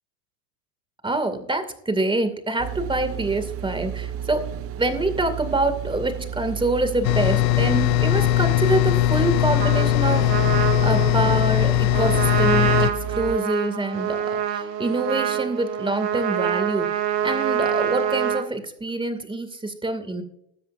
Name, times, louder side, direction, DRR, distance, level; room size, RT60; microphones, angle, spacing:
voice 1, 1.0-4.5 4.7-14.2 14.5-16.9 17.2-20.2, right 2 dB, 10° right, 8 dB, 2.4 m, -26 dB
sound 1, 2.6-13.4, right 9 dB, 30° right, 0.6 m, -33 dB
sound 2, 7.0-12.9, left 18 dB, 85° left, 0.6 m, -20 dB
Trumpet, 9.6-18.5, right 9 dB, 85° right, 1.3 m, -26 dB
20.5 x 7.7 x 2.6 m, 0.76 s
hypercardioid pair, 85°, 48 cm